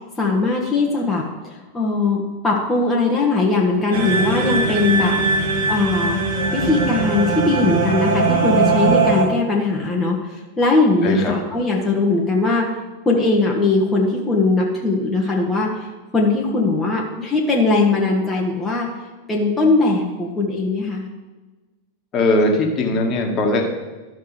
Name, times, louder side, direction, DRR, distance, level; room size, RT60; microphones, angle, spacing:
voice 1, 0.2-1.2 1.7-6.2 6.5-10.2 10.6-12.7 13.0-15.9 16.1-18.9 19.3-21.0, left 3 dB, 15° left, -3 dB, 1.2 m, -20 dB
sound 1, 3.9-9.2, right 4 dB, 60° right, 1.5 m, -20 dB
voice 2, 11.0-11.3 22.1-23.6, left 2 dB, 35° left, 2 dB, 1.5 m, -19 dB
12.5 x 5.9 x 3.2 m, 1.2 s
figure-of-eight pair, 90°, 0 cm